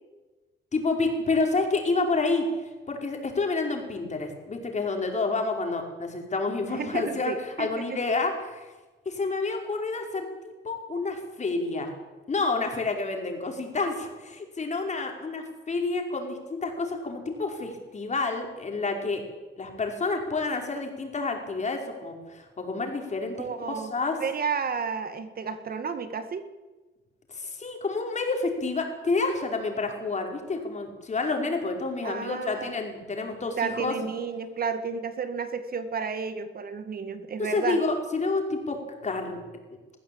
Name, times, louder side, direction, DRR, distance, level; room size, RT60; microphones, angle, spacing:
voice 1, 0.7-2.5 2.9-8.7 9.1-11.9 12.3-19.2 19.6-24.2 27.3-33.9 37.4-38.8 39.0-39.4, left 3 dB, 35° left, 3 dB, 5.2 m, -29 dB
voice 2, 6.6-8.0 23.3-23.9 24.2-26.4 32.0-32.7 33.6-37.8, right 5 dB, 50° right, 10 dB, 1.9 m, -32 dB
20.5 x 15.0 x 8.8 m, 1.2 s
cardioid pair, 90°, 20 cm